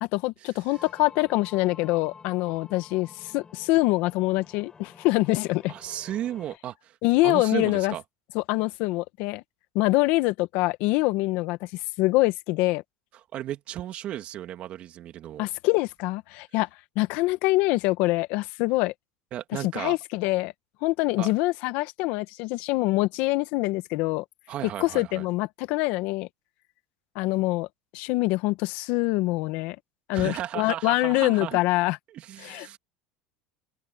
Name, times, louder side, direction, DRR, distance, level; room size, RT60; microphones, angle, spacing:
voice 1, 0.0-5.7 7.0-7.9 8.3-9.4 9.7-11.7 12.0-12.8 15.4-16.7 16.9-18.9 19.7-20.5 20.8-24.2 24.8-26.3 27.1-27.7 27.9-29.8 30.1-32.0 32.4-32.8, left 20 dB, 65° left, 1.5 m, -25 dB
sound 1, 0.7-6.6, left 5 dB, 25° left, 6.9 m, -50 dB
voice 2, 5.7-7.0 7.2-8.0 13.3-15.5 19.3-20.0 21.2-21.3 24.5-25.2 30.1-31.6 32.1-32.8, right 12 dB, 45° right, 2.7 m, -34 dB
open air
supercardioid pair, 110°, 3 cm